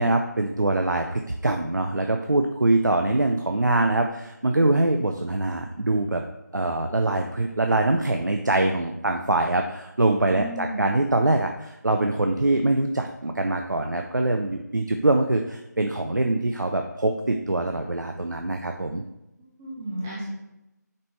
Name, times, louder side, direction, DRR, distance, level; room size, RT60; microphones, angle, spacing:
voice 1, 0.0-6.2 6.5-19.0, right 2 dB, 80° right, 4 dB, 0.6 m, -23 dB
voice 2, 10.3-10.8 19.4-20.3, right 1 dB, 5° right, -6 dB, 0.5 m, -34 dB
6.6 x 5.4 x 3.2 m, 0.92 s
figure-of-eight pair, 165°, 10 cm